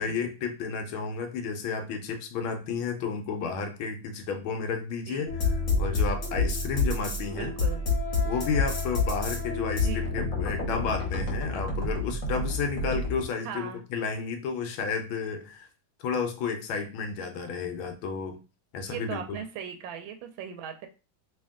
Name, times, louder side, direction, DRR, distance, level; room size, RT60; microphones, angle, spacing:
voice 1, 0.0-5.5 5.8-7.5 8.2-15.7 16.0-18.4 18.7-19.4, left 5 dB, 75° left, 5 dB, 1.4 m, -32 dB
sound 1, 5.3-13.2, left 3 dB, 45° left, 1.2 m, -28 dB
voice 2, 7.3-7.8 9.8-10.1 13.4-13.8 18.9-20.9, right 8 dB, 75° right, 5 dB, 1.3 m, -38 dB
3.2 x 2.8 x 3.5 m, 0.33 s
omnidirectional pair, 2.3 m